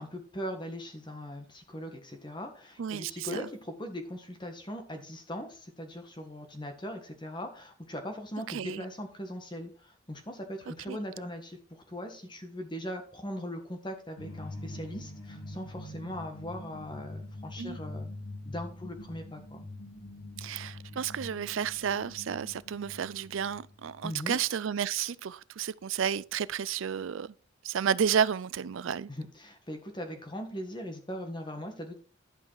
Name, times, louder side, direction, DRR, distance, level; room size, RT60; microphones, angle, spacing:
voice 1, 0.0-18.1 18.4-19.7 24.0-24.4 29.1-32.0, equal, 20° left, 1.5 m, -40 dB
voice 2, 2.8-3.4 8.5-8.8 10.9-11.0 17.6-17.8 20.4-27.3 27.6-29.1, right 8 dB, 70° right, 0.4 m, -31 dB
sound 1, 14.2-24.4, left 1 dB, 90° left, 3.5 m, -44 dB
11.0 x 5.6 x 4.7 m
head